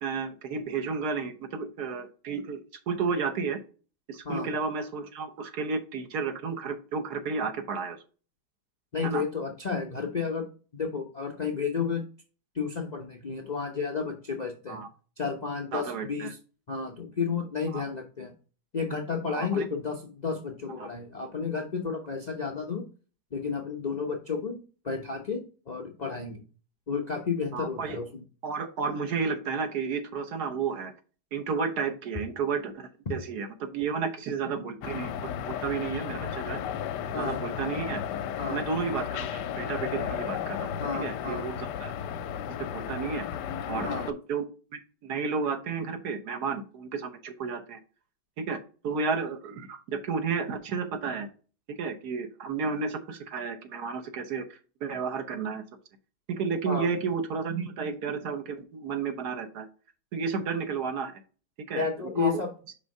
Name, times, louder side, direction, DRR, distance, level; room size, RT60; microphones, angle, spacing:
voice 1, 0.0-2.6 2.9-3.6 4.1-8.0 9.0-9.2 14.7-14.9 15.7-16.3 17.7-17.8 19.3-19.6 20.8-20.9 27.5-28.0 28.4-30.9 31.3-36.6 37.1-38.0 38.5-40.7 41.0-41.9 42.7-43.3 43.7-44.5 45.0-47.8 48.4-48.6 48.8-51.3 51.8-55.6 56.3-59.7 60.1-61.2 61.7-61.8 62.2-62.4, right 5 dB, 70° right, 5 dB, 1.5 m, -32 dB
voice 2, 8.9-10.5 10.7-12.0 12.5-14.8 15.2-16.4 16.7-18.3 18.7-22.8 23.3-24.6 24.8-26.4 26.9-28.2 33.1-33.2 37.1-37.5 38.4-38.7 40.8-41.5 43.8-44.1 56.6-56.9 61.7-62.5, left 5 dB, 45° left, 2 dB, 0.5 m, -32 dB
sound 1, 34.8-44.1, left 9 dB, 80° left, 1.2 m, -34 dB
5.4 x 3.5 x 5.2 m, 0.37 s
omnidirectional pair, 1.8 m